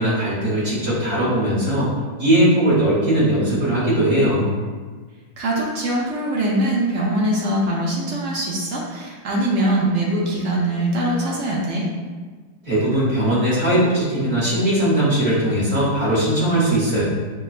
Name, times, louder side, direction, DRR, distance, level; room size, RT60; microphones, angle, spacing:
voice 1, 0.0-1.9 2.2-4.5 12.6-17.0, right 1 dB, 45° right, -9 dB, 1.4 m, -19 dB
voice 2, 5.4-11.9, right 1 dB, 85° right, -3 dB, 0.6 m, -22 dB
6.6 x 2.2 x 2.4 m, 1.4 s
omnidirectional pair, 2.0 m